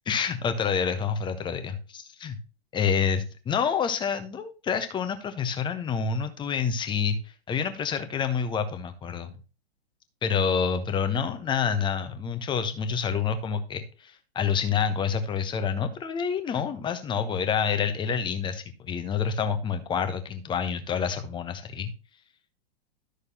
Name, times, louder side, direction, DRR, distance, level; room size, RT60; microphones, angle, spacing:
voice 1, 0.1-2.4 2.7-9.3 10.2-21.9, left 6 dB, 15° left, 9 dB, 1.1 m, -28 dB
12.5 x 6.6 x 2.9 m, 0.33 s
figure-of-eight pair, 105°, 31 cm